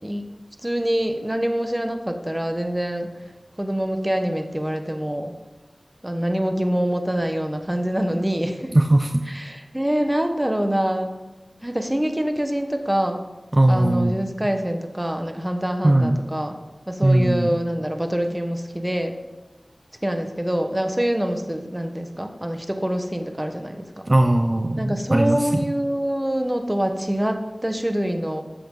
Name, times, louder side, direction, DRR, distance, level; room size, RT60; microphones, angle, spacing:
voice 1, 0.6-3.1 3.6-5.3 6.0-8.7 9.3-11.1 11.6-13.2 13.7-16.5 16.9-19.1 20.0-23.9 24.8-28.4, equal, 15° right, 5 dB, 1.4 m, -25 dB
voice 2, 8.7-9.2 13.5-14.2 15.8-16.2 17.0-17.6 24.1-25.6, right 1 dB, 40° right, 5 dB, 0.8 m, -19 dB
14.0 x 8.4 x 4.0 m, 1.1 s
wide cardioid pair, 50°, 0 cm